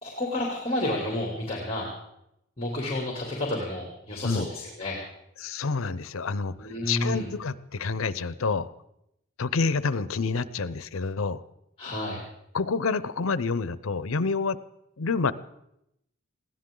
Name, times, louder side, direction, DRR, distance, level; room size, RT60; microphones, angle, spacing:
voice 1, 0.0-1.9 2.6-5.0 6.6-7.3 11.8-12.2, left 1 dB, 25° left, -2 dB, 2.9 m, -30 dB
voice 2, 5.4-8.7 9.4-11.4 12.5-14.6 15.0-15.3, left 4 dB, 90° left, 16 dB, 0.7 m, -28 dB
21.5 x 16.5 x 3.8 m, 0.82 s
head